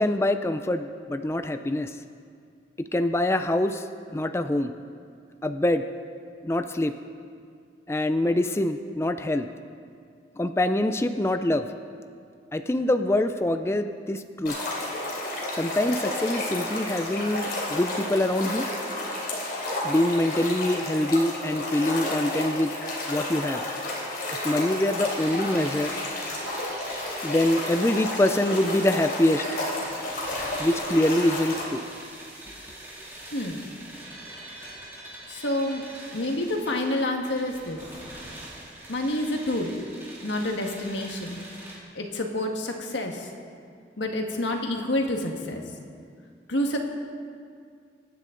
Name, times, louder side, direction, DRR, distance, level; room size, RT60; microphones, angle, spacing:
voice 1, 0.0-1.9 2.8-4.7 5.4-5.8 6.4-6.9 7.9-9.5 10.4-11.7 12.5-14.5 15.5-18.7 19.8-22.7 23.1-23.6 24.4-25.9 27.2-29.4 30.6-31.8, left 1 dB, 15° left, 8 dB, 0.4 m, -24 dB
sound 1, 14.5-31.6, left 1 dB, 55° left, 3.3 m, -31 dB
sound 2, 25.0-41.7, right 1 dB, 15° right, 3.5 m, -43 dB
voice 2, 35.3-35.8 36.1-37.8 38.9-39.7 40.2-41.4 41.9-43.3 44.0-45.6 46.5-46.8, left 1 dB, 90° left, 3 dB, 1.6 m, -28 dB
25.0 x 9.8 x 3.9 m, 2.3 s
head